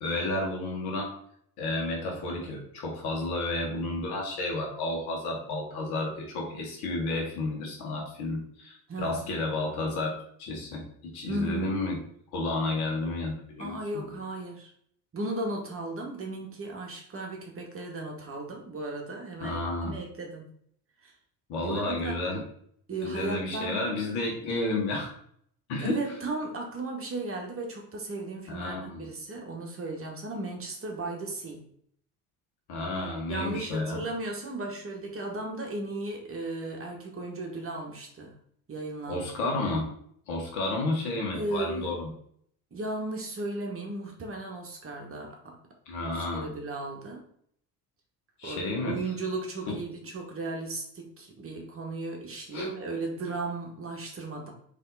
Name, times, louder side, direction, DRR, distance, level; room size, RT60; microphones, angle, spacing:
voice 1, 0.0-1.1 1.6-10.1 10.4-12.0 12.3-14.1 19.4-20.0 21.5-22.4 23.0-25.1 25.7-26.0 28.5-29.1 32.7-34.0 39.1-39.9 40.3-42.1 45.9-46.5 48.4-49.0 49.7-49.8 52.5-52.7, left 2 dB, 55° left, 0 dB, 1.6 m, -31 dB
voice 2, 8.9-9.2 11.3-11.8 13.6-14.7 15.1-20.5 21.0-21.1 21.6-22.2 22.9-23.8 25.8-31.6 33.3-38.3 38.7-39.5 41.3-42.0 42.7-45.6 46.0-47.2 48.4-54.5, right 2 dB, 30° right, 1 dB, 1.3 m, -35 dB
4.0 x 3.3 x 4.0 m, 0.64 s
figure-of-eight pair, 60°, 45 cm